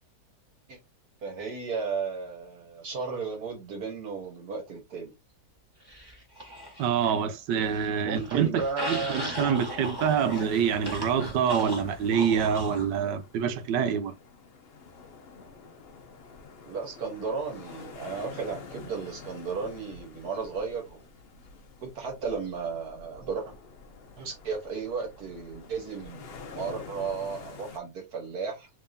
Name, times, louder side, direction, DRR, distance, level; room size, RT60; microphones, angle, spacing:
voice 1, 1.2-5.1 8.0-9.2 16.6-21.1 21.8-23.5 24.2-28.7, right 5 dB, 65° right, 1.5 m, -34 dB
sound 1, 5.9-7.2 7.5-12.9, left 1 dB, 15° right, 1.1 m, -37 dB
voice 2, 6.8-8.5 8.9-14.1, right 8 dB, 90° right, 1.2 m, -26 dB
sound 2, 9.8-27.8, left 4 dB, 60° left, 0.6 m, -48 dB
3.6 x 3.3 x 2.6 m
omnidirectional pair, 1.8 m